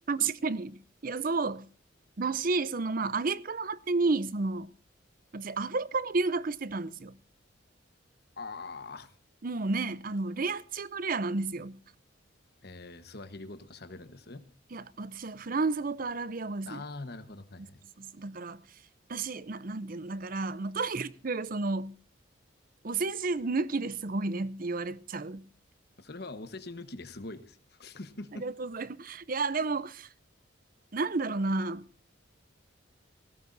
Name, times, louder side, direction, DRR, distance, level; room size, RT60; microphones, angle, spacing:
voice 1, 0.1-1.7 2.2-4.7 5.3-7.2 9.4-11.8 14.7-16.8 18.0-18.6 19.1-21.9 22.8-25.5 28.3-30.1 30.9-31.8, right 3 dB, 45° right, 0.6 m, -31 dB
voice 2, 8.4-9.1 12.6-14.4 16.6-17.8 26.0-28.4, left 3 dB, 55° left, 1.2 m, -43 dB
19.0 x 16.5 x 2.7 m
head